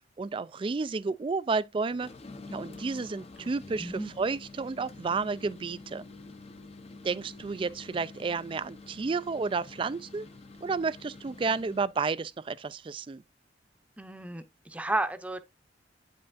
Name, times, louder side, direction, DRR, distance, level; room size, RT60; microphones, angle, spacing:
voice 1, 0.2-2.1 2.5-6.0 7.0-10.3 10.6-13.2, right 4 dB, 30° right, 0.3 m, -31 dB
sound 1, 1.9-11.9, left 3 dB, 35° left, 0.6 m, -48 dB
voice 2, 3.8-4.1 14.0-15.4, right 2 dB, 10° right, 0.7 m, -33 dB
8.7 x 5.5 x 2.5 m
head